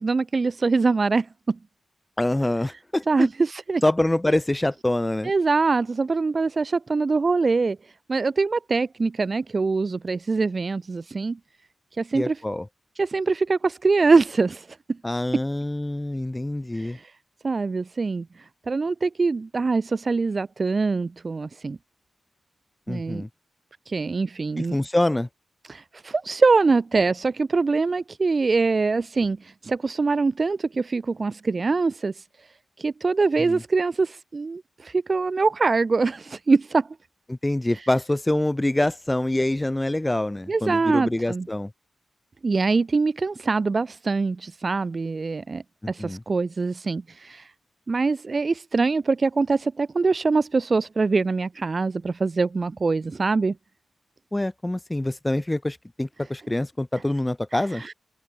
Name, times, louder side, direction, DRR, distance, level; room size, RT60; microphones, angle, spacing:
voice 1, 0.0-1.6 3.1-3.8 5.2-11.4 11.9-12.4 13.0-15.0 16.7-17.1 17.4-21.8 22.9-23.2 23.9-24.8 25.7-37.0 37.7-37.9 40.5-41.5 42.4-47.5 47.9-53.6 57.5-57.9, right 4 dB, 50° right, 2.8 m, -24 dB
voice 2, 2.2-3.3 3.8-5.3 12.1-12.7 15.0-17.0 22.9-23.3 24.6-25.3 33.4-33.6 37.3-41.7 46.0-46.2 54.3-57.8, left 1 dB, 20° left, 3.6 m, -25 dB
open air
cardioid pair, 45°, 0 cm